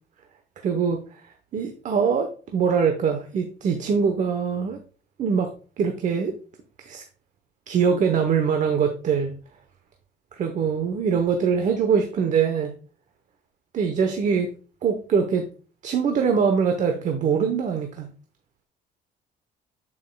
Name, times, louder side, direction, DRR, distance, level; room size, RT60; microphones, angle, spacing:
voice 1, 0.6-1.0 1.5-4.8 5.2-6.3 6.8-7.0 7.7-9.3 10.3-12.7 13.7-14.5 14.8-15.5 15.8-18.1, right 6 dB, 45° right, 0.9 m, -23 dB
9.2 x 5.4 x 2.3 m
cardioid pair, 110°, 17 cm